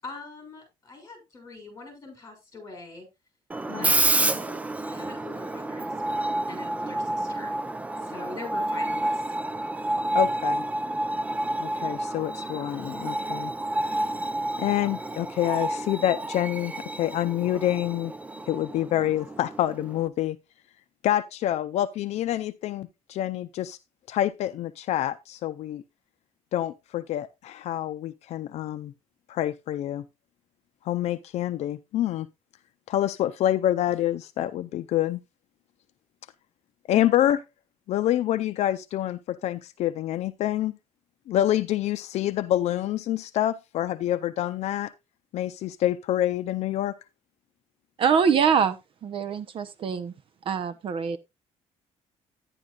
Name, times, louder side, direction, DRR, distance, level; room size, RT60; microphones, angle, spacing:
voice 1, 0.0-3.1 3.7-4.6 4.9-7.6 8.0-9.2, left 3 dB, 25° left, 6.8 m, -42 dB
Screech, 3.5-20.1, right 1 dB, 10° right, 0.5 m, -29 dB
voice 2, 10.1-10.6 11.6-13.5 14.6-18.1 18.5-20.4 21.0-23.8 24.1-25.8 26.5-28.9 29.3-30.0 30.8-32.3 32.9-35.2 36.9-37.4 37.9-40.7 41.3-44.9 45.3-46.9, left 12 dB, 70° left, 0.6 m, -27 dB
voice 3, 48.0-48.8 49.0-50.1 50.5-51.2, right 6 dB, 50° right, 0.8 m, -24 dB
11.0 x 11.0 x 2.4 m
cardioid pair, 140°, 12 cm